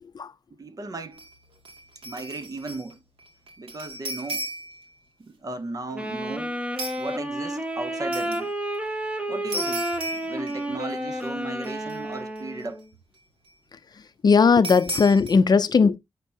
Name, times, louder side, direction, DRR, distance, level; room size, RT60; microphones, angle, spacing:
voice 1, 0.5-1.2 2.0-3.0 3.6-4.5 5.2-6.6 7.0-8.5 9.3-12.8, right 3 dB, 40° right, 0.9 m, -36 dB
sound 1, 1.1-1.3 1.7-2.9 3.2-4.8 6.8-7.1 8.1-8.4 9.5-10.9 11.2-11.3 11.6-12.4 14.6-15.3, right 1 dB, 75° right, 2.2 m, -35 dB
Wind instrument woodwind instrument, 5.9-12.9, right 1 dB, 15° right, 1.2 m, -31 dB
voice 2, 14.2-16.0, left 5 dB, 45° left, 0.5 m, -18 dB
8.4 x 5.9 x 2.6 m
wide cardioid pair, 150°, 9 cm